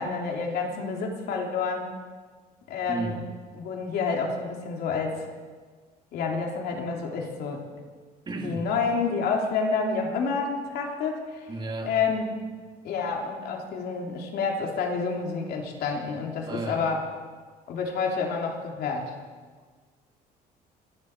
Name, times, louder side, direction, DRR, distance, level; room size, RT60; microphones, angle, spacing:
voice 1, 0.0-1.9 2.7-3.2 3.5-5.2 6.1-7.6 8.4-11.5 11.8-12.3 12.8-17.0 17.7-19.1, left 5 dB, 70° left, 0 dB, 3.2 m, -29 dB
voice 2, 2.9-3.3 8.3-8.6 11.5-11.9 16.4-16.9, right 2 dB, 25° right, 2 dB, 2.4 m, -33 dB
26.5 x 11.0 x 4.7 m, 1.5 s
cardioid pair, 110°, 17 cm